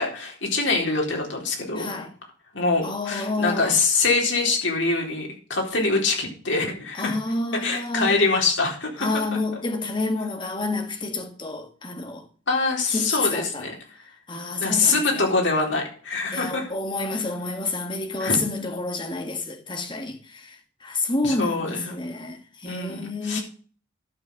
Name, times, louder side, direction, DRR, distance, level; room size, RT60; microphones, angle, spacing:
voice 1, 0.0-2.0 2.5-7.2 7.6-9.1 12.5-13.7 14.6-16.7 18.2-18.4 21.2-21.9 22.7-23.4, left 3 dB, 85° left, 4.0 m, -24 dB
voice 2, 1.8-2.1 2.8-3.8 6.9-8.2 9.0-12.3 12.9-13.7 14.3-15.3 16.3-23.4, left 3 dB, 25° left, 1.7 m, -29 dB
12.0 x 6.3 x 6.5 m
head